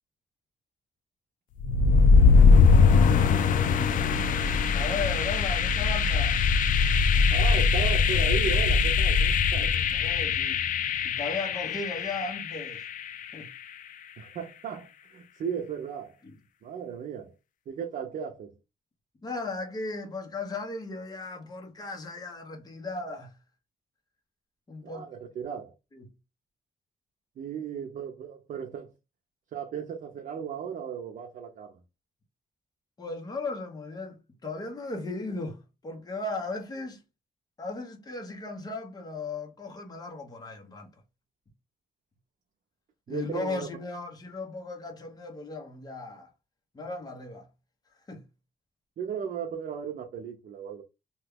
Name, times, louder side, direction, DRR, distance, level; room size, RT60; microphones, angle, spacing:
sound 1, 1.6-13.5, left 5 dB, 65° left, 0.4 m, -22 dB
voice 1, 4.7-6.4 9.5-10.6 11.0-12.9 13.3-13.5 16.2-16.3 19.2-23.3 24.7-25.0 25.9-26.1 33.0-37.0 37.6-40.9 43.1-46.3 46.7-47.5 48.1-48.2, left 3 dB, 25° left, 0.9 m, -36 dB
voice 2, 7.3-9.7 14.2-16.2 16.6-17.3 17.7-18.6 24.8-25.7 27.4-28.9 29.5-31.8 43.1-43.7 49.0-50.8, right 8 dB, 60° right, 0.6 m, -36 dB
2.9 x 2.3 x 3.4 m
cardioid pair, 115°, 15 cm